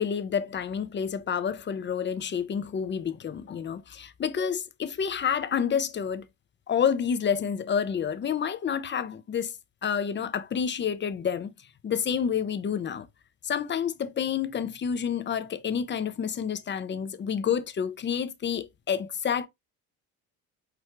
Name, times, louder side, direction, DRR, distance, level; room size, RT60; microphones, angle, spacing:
voice 1, 0.0-6.3 6.7-9.5 9.8-11.5 11.8-13.1 13.4-19.5, left 7 dB, 30° left, 0.6 m, -29 dB
6.0 x 2.3 x 3.1 m
supercardioid pair, 80°, 36 cm